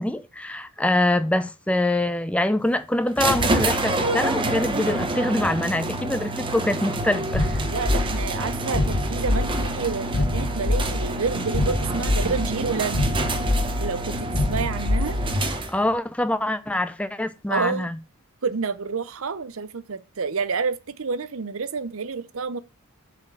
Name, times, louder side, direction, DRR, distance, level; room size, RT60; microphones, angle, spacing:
voice 1, 0.0-7.6 15.7-18.0, left 1 dB, 5° left, 0.5 m, -24 dB
sound 1, 3.2-15.9, right 2 dB, 20° right, 1.0 m, -27 dB
sound 2, 7.3-15.6, left 2 dB, 70° left, 1.1 m, -26 dB
voice 2, 7.7-13.2 13.8-15.2 17.5-17.9 18.4-22.6, right 5 dB, 65° right, 0.7 m, -29 dB
7.2 x 4.3 x 6.7 m
head